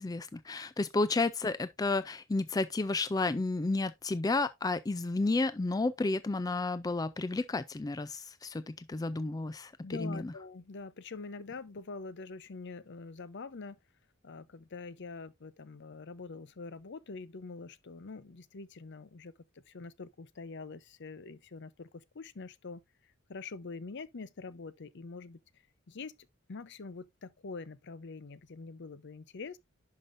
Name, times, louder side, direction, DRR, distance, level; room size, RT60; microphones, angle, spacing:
voice 1, 0.0-9.7 10.0-10.3, left 3 dB, 20° left, 0.3 m, -31 dB
voice 2, 9.8-13.8 14.2-19.3 19.7-22.8 23.3-25.4 25.9-26.1 26.5-29.6, left 4 dB, 55° left, 0.6 m, -44 dB
10.5 x 5.6 x 2.6 m
head